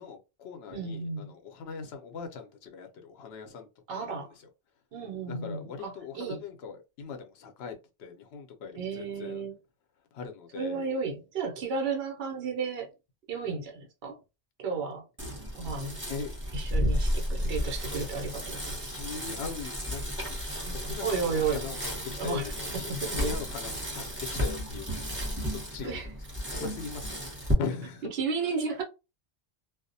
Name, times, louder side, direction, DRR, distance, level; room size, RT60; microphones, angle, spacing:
voice 1, 0.0-4.1 5.3-9.4 10.1-10.8 16.1-16.3 18.8-20.4 20.7-22.9 23.1-25.0 25.5-26.1 26.5-28.1 28.4-28.5, left 5 dB, 80° left, 0.8 m, -40 dB
voice 2, 0.7-1.3 3.9-4.3 4.9-6.4 8.7-9.6 10.5-12.9 13.3-14.2 14.6-15.1 15.5-16.0 16.5-18.8 20.6-21.6 22.1-22.5 22.8-23.4 25.8-26.1 28.0-28.8, right 5 dB, 70° right, 1.0 m, -33 dB
Bicycle, 15.2-27.5, equal, 10° right, 0.8 m, -33 dB
2.3 x 2.0 x 2.6 m
omnidirectional pair, 1.1 m